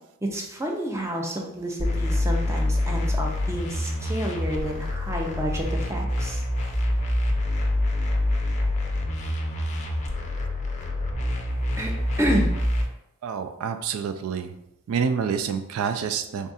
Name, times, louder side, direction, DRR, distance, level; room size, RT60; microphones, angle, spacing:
voice 1, 0.2-6.4 11.8-11.9 12.2-12.5, equal, 15° right, 0 dB, 0.6 m, -29 dB
sound 1, 1.8-12.8, left 1 dB, 35° left, 0.5 m, -26 dB
voice 2, 13.2-14.5 14.9-16.5, right 6 dB, 75° right, 10 dB, 0.3 m, -27 dB
3.5 x 2.4 x 4.0 m, 0.83 s
head